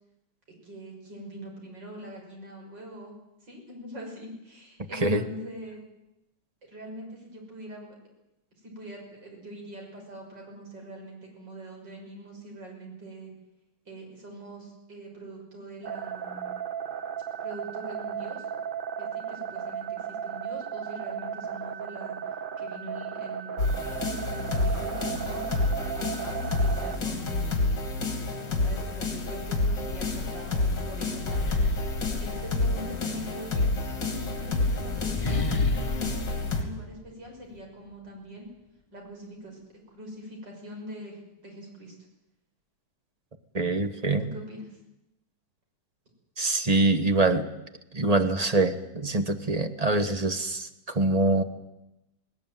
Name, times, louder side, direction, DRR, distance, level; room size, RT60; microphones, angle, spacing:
voice 1, 0.6-3.2 3.4-5.8 6.7-8.0 8.6-13.3 13.9-16.5 17.4-18.5 19.0-22.2 22.6-25.5 25.8-27.8 28.6-31.6 32.2-33.7 34.0-38.5 38.9-39.6 39.9-41.9 44.2-44.8, right 1 dB, 60° right, 1 dB, 6.9 m, -43 dB
voice 2, 4.9-5.2 43.5-44.3 46.4-47.5 47.9-51.4, right 2 dB, 20° right, 8 dB, 1.2 m, -24 dB
sound 1, 15.8-27.0, right 8 dB, 85° right, 0.4 m, -35 dB
sound 2, 23.6-36.6, left 2 dB, 60° left, 3.5 m, -29 dB
sound 3, 29.4-33.0 34.0-37.6, left 3 dB, 25° left, 0.8 m, -36 dB
19.0 x 19.0 x 9.2 m, 0.91 s
omnidirectional pair, 2.2 m